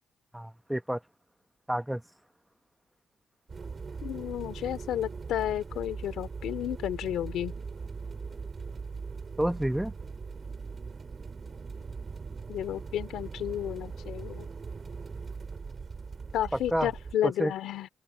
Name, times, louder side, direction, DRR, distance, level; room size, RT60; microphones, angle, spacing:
voice 1, 0.3-1.0 1.7-2.0 9.4-9.9 16.5-16.9 17.2-17.5, equal, 5° right, 1.0 m, -29 dB
sound 1, 3.5-17.1, right 5 dB, 35° right, 4.5 m, -40 dB
voice 2, 4.0-7.5 12.5-14.5 16.3-17.9, left 11 dB, 80° left, 2.6 m, -32 dB
open air
cardioid pair, 90°, 0 cm